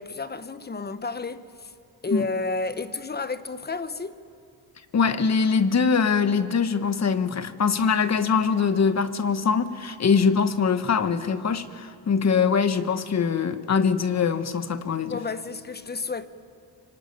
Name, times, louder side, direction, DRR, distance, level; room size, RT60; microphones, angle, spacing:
voice 1, 0.0-1.7 2.0-4.2 15.1-16.3, left 3 dB, 25° left, 1.1 m, -31 dB
voice 2, 4.9-15.1, left 5 dB, 40° left, 1.4 m, -23 dB
26.5 x 23.5 x 9.4 m
cardioid pair, 105°, 40 cm